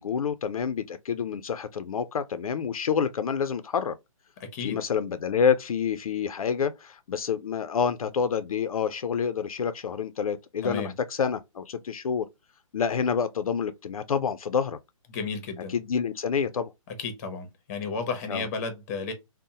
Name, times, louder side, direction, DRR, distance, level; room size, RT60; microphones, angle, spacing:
voice 1, 0.0-4.0 4.6-12.3 12.7-14.8 15.7-16.7 18.3-18.5, left 7 dB, 80° left, 0.4 m, -28 dB
voice 2, 4.4-4.8 10.6-10.9 15.1-15.7 17.0-19.1, left 4 dB, 30° left, 0.7 m, -33 dB
2.7 x 2.0 x 2.7 m
hypercardioid pair, 150°, 18 cm